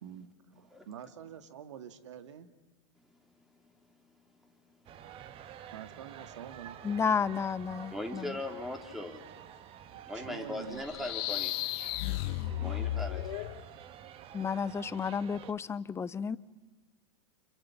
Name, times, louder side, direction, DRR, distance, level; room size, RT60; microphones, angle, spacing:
voice 1, 0.0-2.5 5.7-6.8 10.1-11.1, right 9 dB, 70° right, 10 dB, 2.1 m, -46 dB
sound 1, 4.9-15.5, right 10 dB, 35° right, 1.5 m, -50 dB
voice 2, 6.8-8.4 14.3-16.4, left 6 dB, 15° left, 19 dB, 0.7 m, -32 dB
voice 3, 7.9-9.2 10.1-11.5 12.6-13.2, left 1 dB, ahead, 3 dB, 3.9 m, -39 dB
sound 2, 10.8-13.6, left 14 dB, 55° left, 1.3 m, -34 dB
29.5 x 27.5 x 5.8 m, 1.2 s
hypercardioid pair, 100°, 16 cm